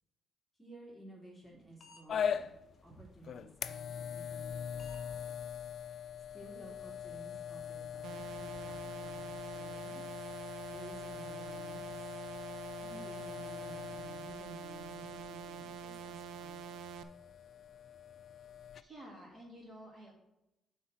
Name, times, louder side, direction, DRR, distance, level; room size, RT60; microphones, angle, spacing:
voice 1, 0.6-2.5 2.8-5.3 6.3-10.1 10.7-12.1 12.8-16.8, right 1 dB, ahead, -4 dB, 2.8 m, -54 dB
sound 1, 1.4-1.5 1.8-2.2 2.7-2.8 4.3-4.5 4.8-5.0 5.3-5.4 5.8-5.9 6.3-6.4 6.6-7.1, left 3 dB, 35° left, 1.8 m, -58 dB
sound 2, 2.1-18.8, left 8 dB, 55° left, 0.4 m, -42 dB
sound 3, 8.0-17.0, right 8 dB, 85° right, 0.5 m, -46 dB
voice 2, 18.8-20.1, right 1 dB, 35° right, -1 dB, 2.3 m, -51 dB
7.8 x 4.2 x 6.2 m, 0.90 s
cardioid pair, 90°, 0 cm